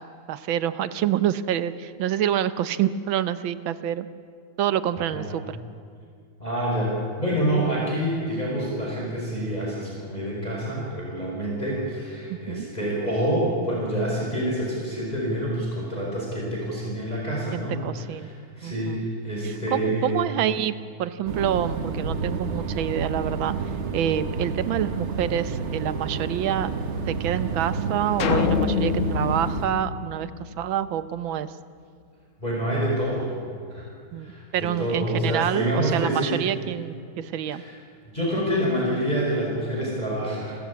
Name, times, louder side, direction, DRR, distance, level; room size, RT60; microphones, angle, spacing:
voice 1, 0.0-4.1 4.6-5.6 12.3-12.7 17.5-18.3 18.6-19.0 19.4-23.5 23.9-26.7 27.1-31.5 34.1-37.6, right 10 dB, 70° right, 14 dB, 1.5 m, -27 dB
voice 2, 6.4-17.8 18.6-20.2 32.4-33.3 33.7-33.9 34.2-36.4 37.5-37.7 38.1-40.6, right 1 dB, 20° left, -4 dB, 5.4 m, -27 dB
sound 1, 21.3-29.7, right 4 dB, 40° right, 1.2 m, -30 dB
sound 2, 28.2-30.7, left 7 dB, 70° left, 2.0 m, -26 dB
29.0 x 14.0 x 8.5 m, 2.3 s
omnidirectional pair, 2.3 m